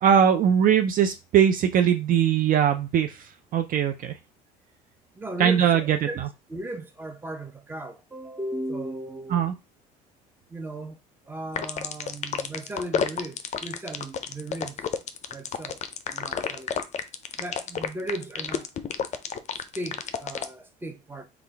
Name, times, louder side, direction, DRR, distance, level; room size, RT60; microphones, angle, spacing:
voice 1, 0.0-4.1 5.4-6.0 9.3-9.5, right 8 dB, 45° right, 0.4 m, -21 dB
voice 2, 5.1-6.2 6.5-9.5 10.5-11.0 11.3-14.9 15.3-15.8 16.1-16.8 17.4-18.7 19.7-21.3, right 1 dB, 10° right, 0.7 m, -36 dB
sound 1, 11.6-20.5, left 7 dB, 35° left, 0.5 m, -30 dB
3.7 x 2.4 x 3.3 m
hypercardioid pair, 75°, 20 cm